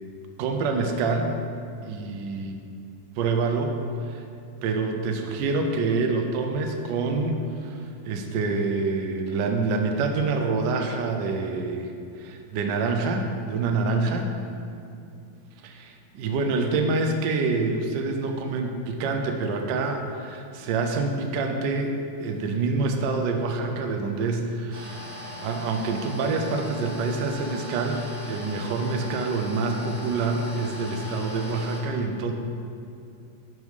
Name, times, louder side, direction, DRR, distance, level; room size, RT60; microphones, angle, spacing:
voice 1, 0.4-1.3 1.8-2.6 3.2-4.2 4.6-11.9 12.2-14.3 15.6-24.9 25.4-32.3, right 3 dB, 70° right, 4 dB, 1.1 m, -26 dB
sound 1, 24.7-31.8, left 1 dB, 30° right, 1.3 m, -39 dB
6.1 x 5.5 x 5.2 m, 2.6 s
omnidirectional pair, 2.4 m